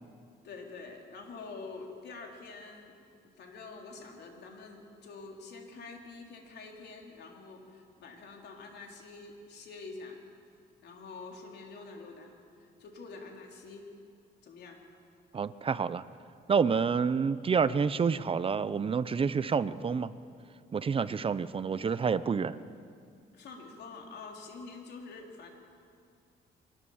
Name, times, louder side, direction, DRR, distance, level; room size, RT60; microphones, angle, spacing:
voice 1, 0.4-2.9 3.2-10.2 10.8-12.3 12.6-13.9 14.4-14.8 23.3-25.5, left 4 dB, 65° left, 1 dB, 3.7 m, -46 dB
voice 2, 15.3-16.0 16.5-20.1 20.7-22.6, right 6 dB, 30° right, 14 dB, 0.7 m, -28 dB
24.0 x 19.5 x 7.3 m, 2.3 s
cardioid pair, 125°, 18 cm